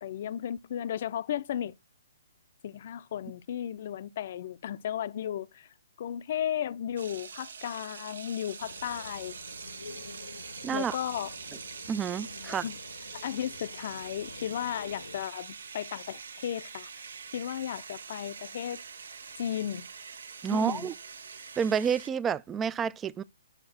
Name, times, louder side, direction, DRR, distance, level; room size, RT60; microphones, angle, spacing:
voice 1, 0.0-1.7 2.6-5.7 6.0-9.4 10.7-11.3 12.4-12.8 13.1-16.9 17.3-18.8 19.4-19.9 20.5-20.9, left 10 dB, 50° left, 0.5 m, -35 dB
sound 1, 7.0-22.1, right 5 dB, 70° right, 0.7 m, -44 dB
sound 2, 8.6-15.3, left 3 dB, 85° left, 1.0 m, -48 dB
voice 2, 10.6-11.0 11.9-12.7 20.4-20.9 21.6-23.2, right 7 dB, 15° right, 0.3 m, -29 dB
6.6 x 4.7 x 6.1 m
hypercardioid pair, 135°, 0 cm